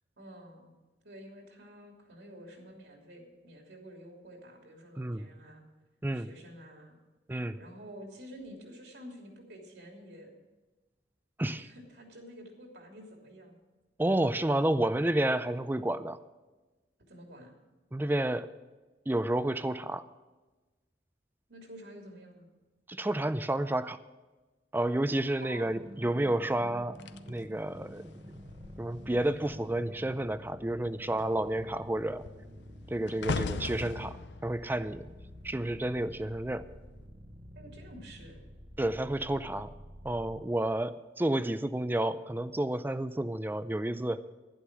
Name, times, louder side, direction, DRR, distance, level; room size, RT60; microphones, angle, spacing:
voice 1, 0.2-0.7 1.0-5.6 6.1-7.0 7.5-10.3 11.6-13.6 17.0-17.5 21.5-22.5 25.4-25.6 37.5-38.4, equal, 70° right, 1 dB, 3.1 m, -49 dB
voice 2, 5.0-5.3 6.0-6.3 7.3-7.6 11.4-11.7 14.0-16.2 17.9-18.5 19.1-20.0 22.9-24.0 24.7-27.0 27.3-28.0 28.8-32.3 32.9-34.2 34.4-35.1 35.4-36.7 38.8-39.7 40.0-44.2, right 1 dB, 10° right, 13 dB, 0.4 m, -30 dB
sound 1, 25.7-40.4, equal, 30° right, 1.0 m, -49 dB
sound 2, 27.0-29.7 30.0-30.4 30.7-36.0 36.8-37.0, left 4 dB, 85° left, 0.6 m, -40 dB
11.5 x 11.0 x 6.2 m, 1.2 s
head